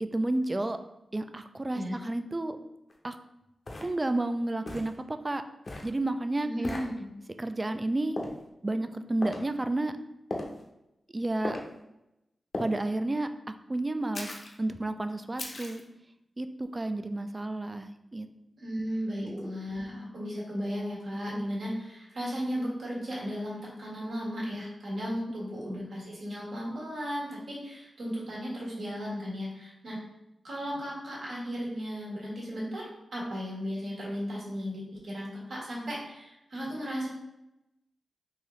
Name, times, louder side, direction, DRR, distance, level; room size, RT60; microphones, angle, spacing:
voice 1, 0.0-0.8 1.1-2.6 3.0-3.2 3.8-5.4 5.8-6.8 7.4-8.2 8.6-9.9 11.1-11.6 12.6-13.3 13.7-14.3 14.6-15.8 16.4-16.5 16.7-18.3 19.2-19.5, right 2 dB, 25° right, 9 dB, 0.3 m, -31 dB
sound 1, 2.9-3.0 3.7-3.9 4.7-4.9 5.6-5.9 6.6-6.9 8.2-8.4 9.2-9.4 10.3-10.6 11.4-11.7 12.5-12.7 14.1-14.5 15.4-15.8, left 2 dB, 50° left, 0.7 m, -36 dB
voice 2, 6.4-7.1 18.6-30.0 30.4-37.1, equal, 75° right, -5 dB, 1.4 m, -35 dB
3.9 x 2.7 x 3.1 m, 0.89 s
cardioid pair, 60°, 0 cm